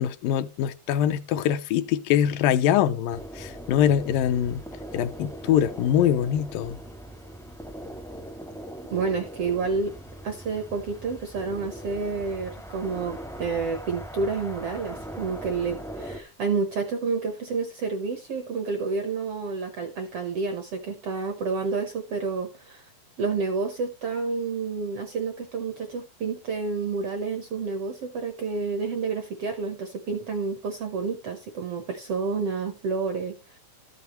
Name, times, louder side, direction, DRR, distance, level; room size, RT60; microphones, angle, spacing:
voice 1, 0.0-4.6 4.9-6.8, left 10 dB, 80° left, 2.3 m, -23 dB
sound 1, 3.1-16.2, equal, 5° left, 0.3 m, -40 dB
voice 2, 8.9-9.9 10.2-22.9 23.2-33.6, right 4 dB, 70° right, 1.4 m, -29 dB
13.5 x 6.9 x 3.0 m
omnidirectional pair, 4.0 m